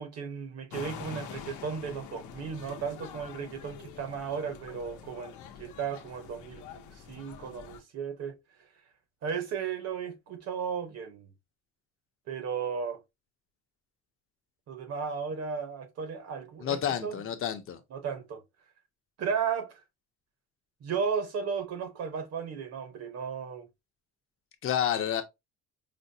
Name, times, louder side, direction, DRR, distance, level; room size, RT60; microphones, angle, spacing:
voice 1, 0.0-8.4 9.2-11.3 12.3-13.0 14.7-17.2 17.9-18.4 19.2-19.8 20.8-23.7, right 6 dB, 60° right, 0.9 m, -35 dB
sound 1, 0.7-7.8, left 8 dB, 85° left, 0.7 m, -45 dB
voice 2, 16.6-17.8 24.6-25.2, left 9 dB, 45° left, 0.6 m, -29 dB
5.0 x 2.2 x 2.6 m
cardioid pair, 165°, 29 cm